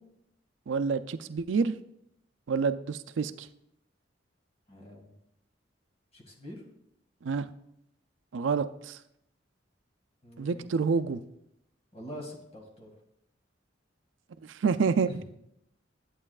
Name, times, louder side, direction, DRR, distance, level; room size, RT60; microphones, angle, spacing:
voice 1, 0.7-1.7 2.5-3.5 7.2-7.5 8.3-9.0 10.4-11.2 14.5-15.2, right 5 dB, 90° right, 12 dB, 0.4 m, -28 dB
voice 2, 4.7-5.1 6.1-6.6 10.2-10.7 11.9-12.9 15.1-15.2, left 1 dB, 35° left, 0 dB, 2.0 m, -44 dB
11.0 x 8.4 x 2.4 m, 0.79 s
head